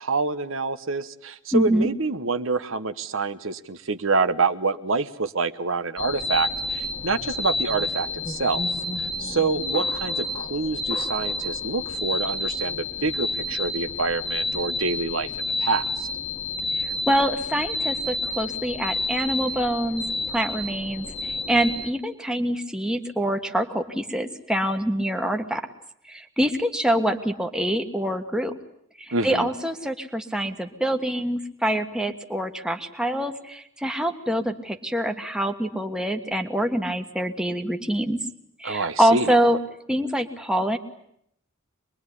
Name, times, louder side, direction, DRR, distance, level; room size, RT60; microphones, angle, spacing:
voice 1, 0.0-8.7 9.0-15.3 15.6-16.1 29.1-29.5 38.6-39.3, right 3 dB, 70° right, 10 dB, 1.2 m, -26 dB
voice 2, 1.5-1.9 16.8-25.6 26.1-28.5 29.0-38.2 38.6-39.6 39.9-40.8, right 1 dB, 5° right, 4 dB, 1.5 m, -25 dB
sound 1, 6.0-21.9, left 2 dB, 25° left, 1.6 m, -30 dB
25.0 x 22.0 x 9.9 m, 0.73 s
head